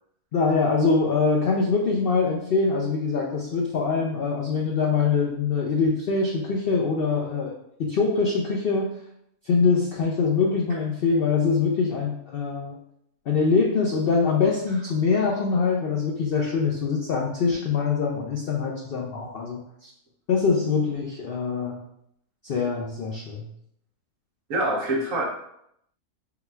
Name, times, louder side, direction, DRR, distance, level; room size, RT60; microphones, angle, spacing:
voice 1, 0.3-7.5 7.8-9.0 9.4-12.8 13.3-19.9 20.3-21.8 22.4-23.5, left 4 dB, 85° left, -1 dB, 0.5 m, -24 dB
voice 2, 24.5-25.2, right 1 dB, 65° right, 1 dB, 1.0 m, -25 dB
3.9 x 2.3 x 4.3 m, 0.74 s
omnidirectional pair, 1.7 m